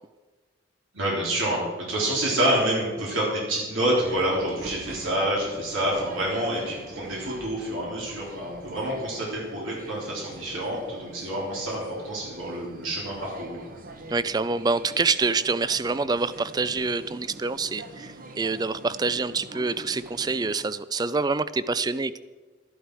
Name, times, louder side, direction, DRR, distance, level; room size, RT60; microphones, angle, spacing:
voice 1, 0.9-13.6, right 1 dB, 85° right, -4 dB, 3.6 m, -27 dB
sound 1, 3.8-20.6, right 2 dB, 45° right, 1.1 m, -44 dB
voice 2, 14.1-22.2, right 4 dB, 20° right, 16 dB, 0.3 m, -26 dB
13.0 x 11.5 x 4.8 m, 1.3 s
head